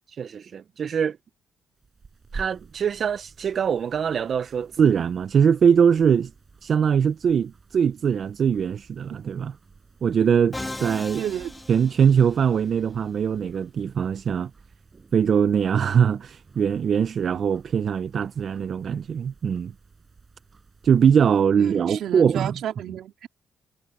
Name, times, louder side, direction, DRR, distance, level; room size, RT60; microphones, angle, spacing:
voice 1, 0.1-1.2 2.3-6.3 6.6-9.5 10.0-11.2 11.7-14.5 15.1-19.7 20.8-22.5, right 7 dB, 55° right, 0.6 m, -22 dB
sound 1, 1.8-21.4, right 4 dB, 35° right, 6.2 m, -49 dB
Musical instrument, 10.5-12.6, left 2 dB, 15° left, 0.6 m, -37 dB
voice 2, 11.2-11.5 21.6-23.3, right 10 dB, 75° right, 2.1 m, -31 dB
cardioid pair, 90°, 0 cm